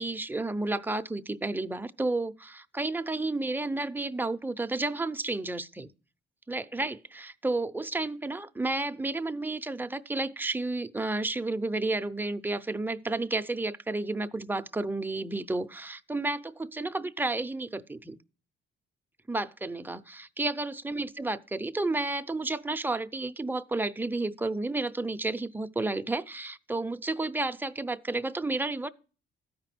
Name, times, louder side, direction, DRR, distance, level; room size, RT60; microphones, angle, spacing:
voice 1, 0.0-5.9 6.5-18.2 19.3-28.9, right 2 dB, 10° right, 0.6 m, -31 dB
12.5 x 4.9 x 5.9 m
cardioid pair, 90°, 20 cm